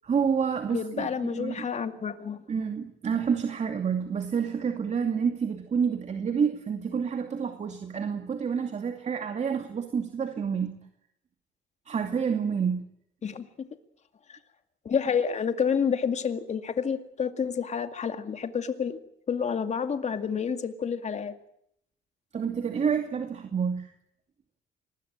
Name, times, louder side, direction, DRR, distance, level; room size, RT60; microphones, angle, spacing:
voice 1, 0.0-1.7 2.5-10.7 11.9-12.8 22.3-23.9, right 6 dB, 40° right, 6 dB, 2.6 m, -28 dB
voice 2, 0.7-2.4 13.2-13.7 14.3-14.4 14.8-19.0 19.3-21.3, left 6 dB, 40° left, 9 dB, 2.3 m, -29 dB
25.5 x 21.5 x 9.0 m, 0.75 s
cardioid pair, 120°, 18 cm